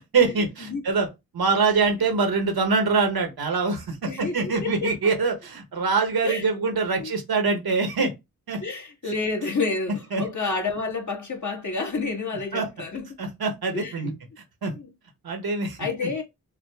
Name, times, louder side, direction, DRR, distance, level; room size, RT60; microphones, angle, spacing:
voice 1, 0.1-1.1 1.3-8.1 8.5-8.6 10.1-10.2 12.5-12.7 13.2-14.1 14.6-14.7 15.2-15.8, right 4 dB, 85° right, 1.1 m, -24 dB
voice 2, 4.1-4.9 6.2-6.6 7.0-7.1 8.6-13.1 13.7-14.1 14.7-14.9 15.8-16.2, left 3 dB, 55° left, 1.6 m, -29 dB
4.9 x 2.2 x 3.5 m
cardioid pair, 40°, 36 cm